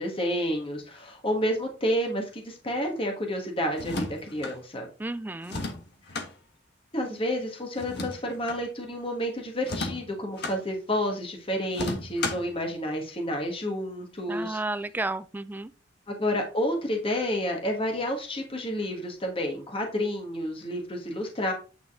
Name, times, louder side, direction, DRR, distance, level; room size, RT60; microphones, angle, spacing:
voice 1, 0.0-4.9 6.9-14.6 16.1-21.5, equal, 30° left, 1.5 m, -30 dB
sound 1, 3.7-4.6 5.4-6.3 7.8-8.6 9.6-10.6 11.7-12.5, left 2 dB, 65° left, 1.3 m, -33 dB
voice 2, 5.0-5.6 14.3-15.7, right 2 dB, 10° right, 0.3 m, -32 dB
8.9 x 3.9 x 3.7 m
head